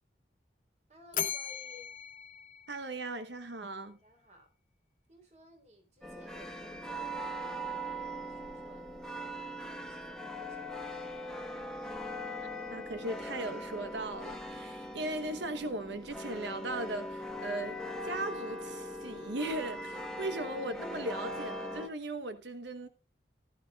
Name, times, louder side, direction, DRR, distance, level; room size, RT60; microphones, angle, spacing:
voice 1, 0.9-1.9 3.9-4.5 5.1-8.9 9.3-9.6 9.9-11.0, left 1 dB, 40° right, 3.6 m, -57 dB
Bell, 1.1-3.4, left 8 dB, 45° left, 1.0 m, -39 dB
voice 2, 2.7-4.0 12.7-17.8 18.0-22.9, right 2 dB, 75° right, 1.1 m, -38 dB
sound 1, 6.0-21.9, equal, 5° left, 1.4 m, -40 dB
16.0 x 11.5 x 2.4 m
head